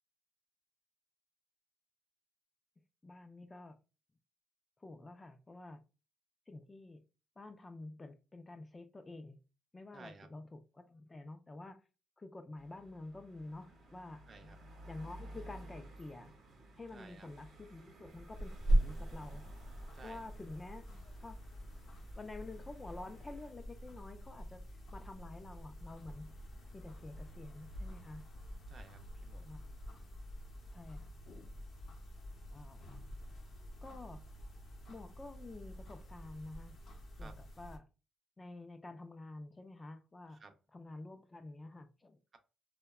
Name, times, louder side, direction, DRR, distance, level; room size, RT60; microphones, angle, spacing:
voice 1, 3.0-3.8 4.8-5.8 6.5-7.0 7.4-9.4 9.7-11.8 12.2-14.6 14.9-16.3 16.8-19.5 20.0-20.9 21.2-21.4 22.2-24.7 24.9-26.3 26.7-28.3 29.4-29.7 30.7-31.1 32.5-32.9 33.8-34.2 34.9-36.8 37.2-37.9 38.4-40.4 40.7-42.2, left 2 dB, 25° left, 0.3 m, -49 dB
voice 2, 9.9-10.3 14.3-14.6 16.9-17.3 19.9-20.3 28.7-29.4 37.2-37.3 40.3-40.5, right 4 dB, 40° right, 0.4 m, -55 dB
sound 1, 12.6-23.5, right 1 dB, 60° right, 0.8 m, -56 dB
sound 2, 18.1-37.8, right 1 dB, 60° left, 0.6 m, -41 dB
2.6 x 2.1 x 2.3 m
cardioid pair, 90°, 0 cm